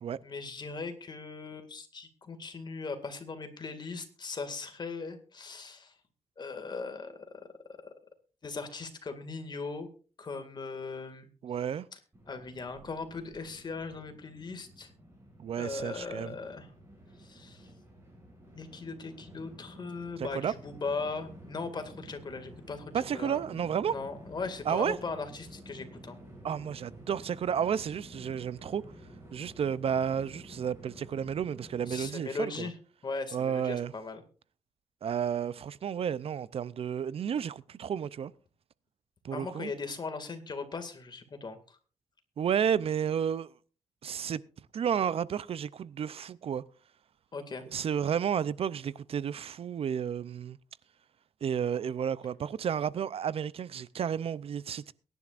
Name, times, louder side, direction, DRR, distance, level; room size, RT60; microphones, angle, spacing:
voice 1, 0.2-5.9 6.4-7.4 7.8-7.9 8.4-9.9 10.2-11.3 11.9-12.0 12.3-14.9 15.6-16.7 17.2-17.7 18.5-23.4 23.9-26.2 31.9-32.8 33.0-34.2 39.3-41.8 47.3-47.6, left 4 dB, 40° left, 2.1 m, -39 dB
voice 2, 11.4-11.9 15.4-16.3 20.2-20.5 22.9-23.9 24.7-25.0 26.4-28.8 29.3-32.7 33.3-33.9 35.0-38.3 39.2-39.7 42.4-43.5 44.0-44.4 44.7-46.6 47.7-50.6 51.4-54.9, right 8 dB, 60° right, 0.5 m, -32 dB
Train, 12.1-32.1, equal, 20° right, 7.9 m, -51 dB
22.5 x 11.0 x 2.5 m
wide cardioid pair, 115°, 11 cm